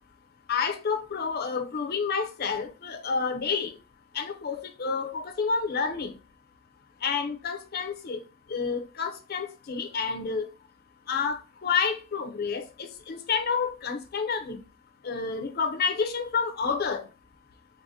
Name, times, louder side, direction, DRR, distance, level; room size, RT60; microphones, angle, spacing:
voice 1, 0.5-3.7 4.1-6.1 7.0-8.2 8.5-10.5 11.1-14.6 15.0-17.1, left 5 dB, 45° left, 0.5 m, -29 dB
4.8 x 2.1 x 2.6 m
head